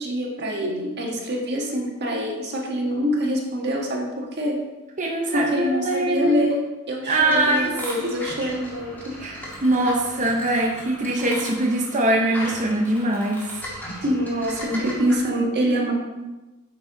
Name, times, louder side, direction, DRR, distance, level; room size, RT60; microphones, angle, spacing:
voice 1, 0.0-4.6 5.3-9.1 14.0-15.9, equal, 50° right, -1 dB, 1.4 m, -25 dB
voice 2, 5.0-6.5 7.1-7.7 9.2-13.5 13.9-14.0 14.7-14.8, right 1 dB, 35° right, -1 dB, 0.9 m, -22 dB
sound 1, 7.1-15.2, equal, 10° left, 1.8 m, -37 dB
9.5 x 4.7 x 3.9 m, 1.1 s
head